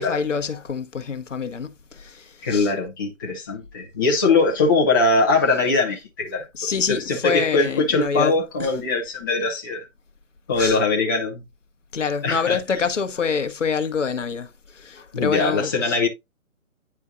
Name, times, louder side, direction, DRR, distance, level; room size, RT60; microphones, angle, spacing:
voice 1, 0.0-2.7 6.5-8.3 8.6-8.7 10.5-10.8 11.9-16.0, left 5 dB, 60° left, 1.0 m, -26 dB
voice 2, 2.4-9.9 10.5-11.4 12.2-12.6 15.1-16.1, left 3 dB, 15° left, 0.7 m, -21 dB
9.7 x 4.5 x 2.4 m
figure-of-eight pair, 150°, 42 cm